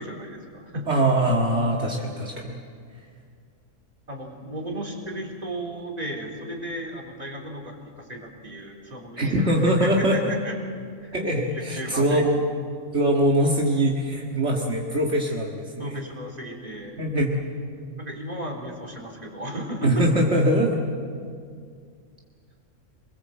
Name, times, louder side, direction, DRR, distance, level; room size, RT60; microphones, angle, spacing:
voice 1, 0.0-0.9 4.1-9.3 9.6-10.5 11.0-11.2 11.5-12.2 15.8-17.0 18.0-20.0, right 1 dB, 30° right, -1 dB, 4.0 m, -35 dB
voice 2, 0.9-2.6 9.2-10.3 11.1-12.4 12.9-16.0 17.0-17.4 19.8-20.8, right 1 dB, 60° right, -2 dB, 2.3 m, -22 dB
28.0 x 22.0 x 7.7 m, 2.2 s
omnidirectional pair, 1.3 m